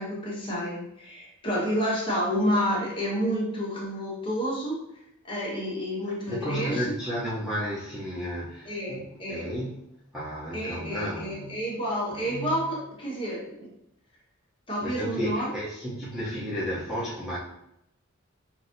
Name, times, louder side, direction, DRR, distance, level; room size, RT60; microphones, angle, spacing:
voice 1, 0.0-4.8 5.2-6.8 8.7-9.5 10.5-13.7 14.7-15.5, equal, 25° left, -5 dB, 1.3 m, -29 dB
voice 2, 6.0-9.8 10.1-11.6 12.1-12.6 14.8-17.4, equal, 5° right, -10 dB, 0.7 m, -33 dB
5.9 x 2.7 x 2.6 m, 0.81 s
head